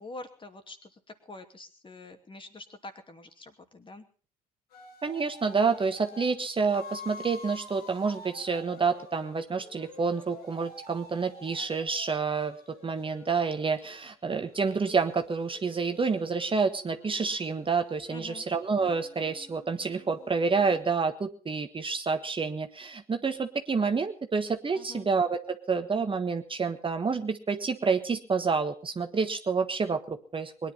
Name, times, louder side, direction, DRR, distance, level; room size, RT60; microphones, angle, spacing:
voice 1, 0.0-4.0 18.1-18.4 24.7-25.1, left 2 dB, 25° left, 7 dB, 2.6 m, -46 dB
sound 1, 4.7-6.3 6.7-14.0 14.5-20.8, left 3 dB, 80° left, 5.0 m, -49 dB
voice 2, 5.0-12.6 12.8-30.7, right 5 dB, 25° right, 7 dB, 1.4 m, -28 dB
21.5 x 10.5 x 5.6 m, 0.40 s
hypercardioid pair, 60°, 20 cm